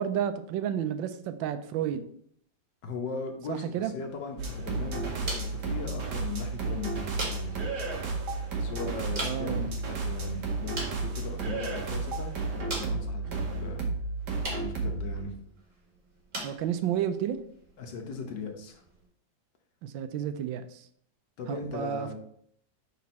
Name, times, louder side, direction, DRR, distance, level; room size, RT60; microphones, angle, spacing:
voice 1, 0.0-2.0 3.5-3.9 9.2-9.7 16.4-17.4 19.8-20.8 21.5-22.1, right 9 dB, 90° right, 11 dB, 1.3 m, -31 dB
voice 2, 2.8-7.6 8.6-13.8 14.6-15.3 17.8-18.8 21.4-22.1, left 4 dB, 70° left, 3 dB, 1.6 m, -38 dB
sound 1, 4.0-19.1, right 1 dB, 45° right, 2.4 m, -43 dB
sound 2, 4.4-15.2, right 3 dB, 65° right, 1.6 m, -32 dB
6.0 x 4.2 x 4.2 m, 0.65 s
omnidirectional pair, 2.0 m